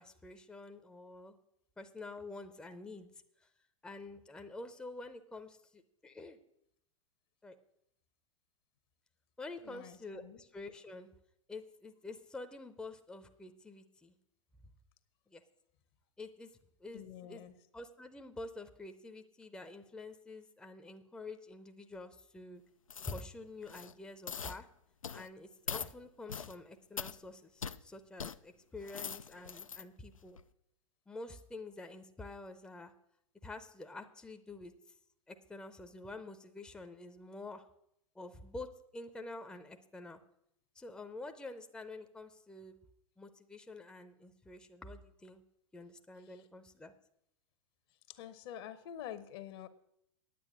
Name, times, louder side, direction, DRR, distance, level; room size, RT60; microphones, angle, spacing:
voice 1, 0.0-1.4 1.8-3.1 3.8-6.4 7.4-7.6 9.4-11.1 11.5-14.1 15.3-15.4 16.2-16.5 16.8-17.4 17.7-22.6 23.1-24.7 25.1-30.4 31.1-32.9 33.4-34.7 35.3-37.6 38.2-38.7 38.9-40.2 40.8-42.8 43.2-45.4 45.7-46.9, left 2 dB, 5° left, 7 dB, 0.6 m, -48 dB
voice 2, 9.6-10.4 16.9-17.5 46.3-46.4 48.1-49.7, left 10 dB, 50° left, 12 dB, 1.0 m, -47 dB
sound 1, 22.9-23.3 23.6-23.9 24.3-24.6 25.0-25.3 25.7-25.9 26.3-26.6 27.0-27.2 27.6-27.8 28.2-28.4 28.8-29.8 30.3-30.4, left 6 dB, 80° left, 0.5 m, -42 dB
9.4 x 8.6 x 6.4 m, 0.75 s
figure-of-eight pair, 95°, 17 cm